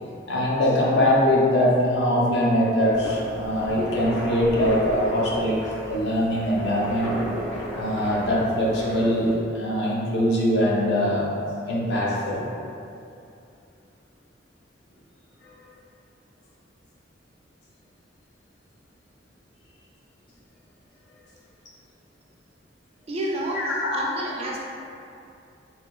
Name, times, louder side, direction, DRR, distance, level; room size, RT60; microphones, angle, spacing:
voice 1, 0.3-5.6 5.9-7.1 7.7-11.3 11.7-12.4 15.4-15.5 23.5-24.1, equal, 60° left, -5 dB, 0.5 m, -22 dB
sound 1, 2.9-9.3, equal, 80° left, 0.9 m, -33 dB
voice 2, 23.1-23.6 23.9-24.6, right 1 dB, 30° right, -3 dB, 0.3 m, -29 dB
3.1 x 2.2 x 2.2 m, 2.6 s
head